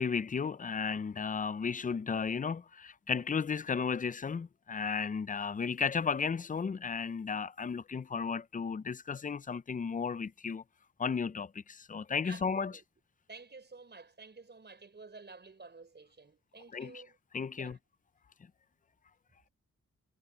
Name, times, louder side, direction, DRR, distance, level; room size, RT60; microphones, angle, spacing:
voice 1, 0.0-10.6 11.0-12.7 16.7-17.0 17.3-17.8, left 5 dB, 25° left, 0.4 m, -34 dB
voice 2, 12.2-12.8 13.3-17.2 17.6-17.8, right 4 dB, 35° right, 5.3 m, -51 dB
wide cardioid pair, 145°, 31 cm